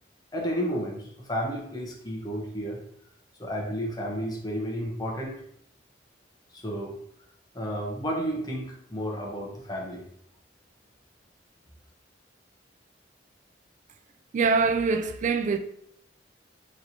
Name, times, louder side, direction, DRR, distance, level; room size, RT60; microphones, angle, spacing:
voice 1, 0.3-2.8 3.4-5.4 6.5-6.9 7.5-10.0, equal, 20° left, 0.9 m, -32 dB
voice 2, 14.3-15.6, right 4 dB, 40° right, 0.3 m, -24 dB
3.2 x 2.7 x 4.3 m
head